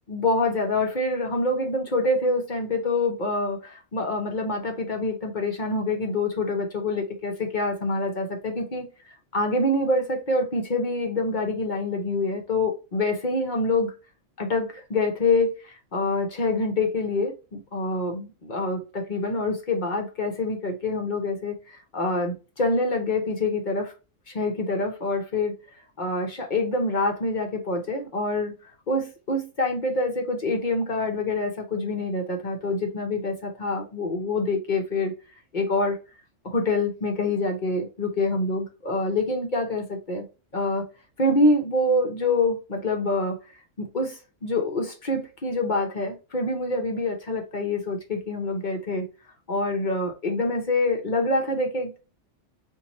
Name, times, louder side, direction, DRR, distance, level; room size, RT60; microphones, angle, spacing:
voice 1, 0.1-8.9 9.3-13.9 14.4-23.9 24.3-25.6 26.0-28.5 28.9-35.1 35.5-36.0 36.4-40.2 40.5-40.8 41.2-43.4 43.8-49.1 49.5-52.0, left 2 dB, 45° left, 0.9 m, -26 dB
4.0 x 2.8 x 2.9 m
omnidirectional pair, 1.3 m